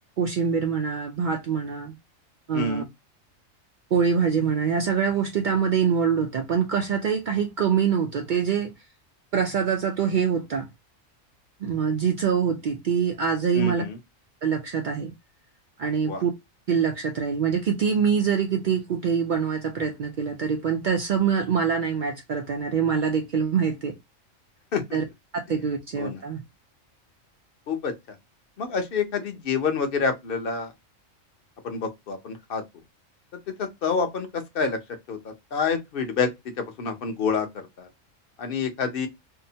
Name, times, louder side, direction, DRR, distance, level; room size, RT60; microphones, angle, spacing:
voice 1, 0.2-1.9 2.5-2.8 3.9-8.7 9.3-10.7 11.6-13.8 14.4-15.1 15.8-16.3 16.7-23.9 24.9-25.0 25.5-26.4, right 6 dB, 75° right, 0.4 m, -24 dB
voice 2, 2.5-2.8 13.5-14.0 16.1-16.2 24.7-24.8 26.0-26.2 27.7-27.9 28.6-30.7 31.6-32.6 33.6-34.8 35.1-36.3 36.6-37.9 38.4-39.1, left 5 dB, 50° left, 0.8 m, -27 dB
2.7 x 2.1 x 2.6 m
omnidirectional pair, 1.4 m